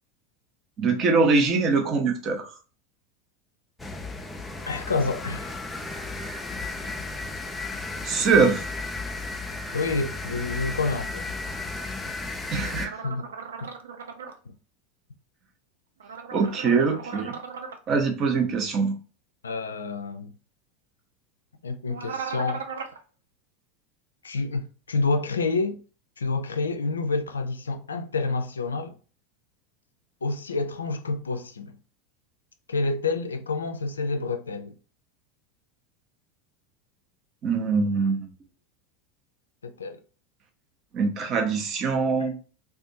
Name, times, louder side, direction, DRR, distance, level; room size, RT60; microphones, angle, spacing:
voice 1, 0.8-2.5 8.0-8.6 12.5-13.0 16.3-17.3 17.9-19.0 37.4-38.3 40.9-42.3, right 4 dB, 40° right, 0.7 m, -23 dB
sound 1, 3.8-12.9, left 3 dB, 10° left, 0.4 m, -34 dB
voice 2, 4.7-5.6 9.7-11.3 13.0-13.3 13.6-13.7 14.5-14.6 19.4-20.3 21.6-22.6 24.2-25.8 26.2-29.0 30.2-31.7 32.7-34.7 39.6-40.0 42.2-42.3, left 3 dB, 80° left, 0.3 m, -28 dB
sound 2, 12.8-14.3 16.0-17.8 21.9-23.0, right 6 dB, 75° right, 0.3 m, -37 dB
2.5 x 2.3 x 2.6 m
figure-of-eight pair, 80°, 0 cm